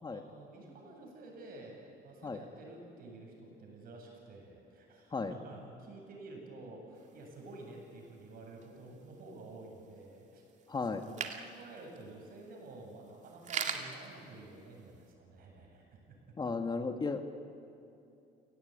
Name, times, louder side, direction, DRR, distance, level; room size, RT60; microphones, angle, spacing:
voice 1, 0.1-10.4 10.8-16.0, right 2 dB, 60° right, 1 dB, 7.9 m, -50 dB
sound 1, 7.0-15.1, right 6 dB, 45° right, 2.2 m, -45 dB
voice 2, 10.7-11.0 16.4-17.2, left 4 dB, 25° left, 6 dB, 1.7 m, -34 dB
29.5 x 18.0 x 9.6 m, 2.7 s
cardioid pair, 110°, 17 cm